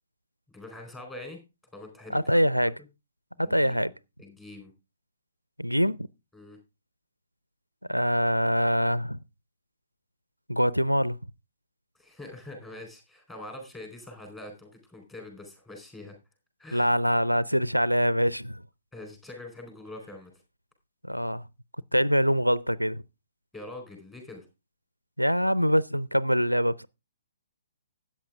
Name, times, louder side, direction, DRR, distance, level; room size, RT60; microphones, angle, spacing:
voice 1, 0.5-1.4 1.7-2.7 3.4-4.7 6.3-6.6 11.9-16.2 16.6-16.9 18.9-20.3 23.5-24.5, left 2 dB, 10° left, 4.2 m, -44 dB
voice 2, 2.1-2.7 3.4-3.9 5.6-6.1 7.9-9.2 10.5-11.2 16.7-18.6 21.1-21.4 21.9-23.0 25.2-26.9, equal, 90° right, 0.5 m, -24 dB
13.0 x 8.8 x 3.6 m
figure-of-eight pair, 125°, 0 cm